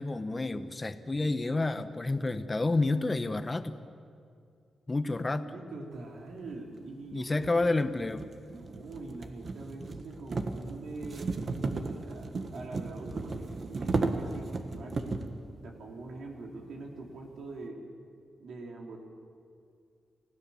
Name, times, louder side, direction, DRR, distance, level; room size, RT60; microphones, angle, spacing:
voice 1, 0.0-3.8 4.9-5.5 7.1-8.3, left 2 dB, 25° left, 10 dB, 1.1 m, -29 dB
voice 2, 5.4-7.7 8.5-11.3 11.7-15.2 15.6-17.8 18.4-19.0, right 3 dB, 80° right, 1 dB, 3.4 m, -44 dB
sound 1, 6.5-6.6 7.3-15.4, right 3 dB, 45° right, 1.6 m, -35 dB
30.0 x 16.5 x 7.1 m, 2.4 s
wide cardioid pair, 115°, 0 cm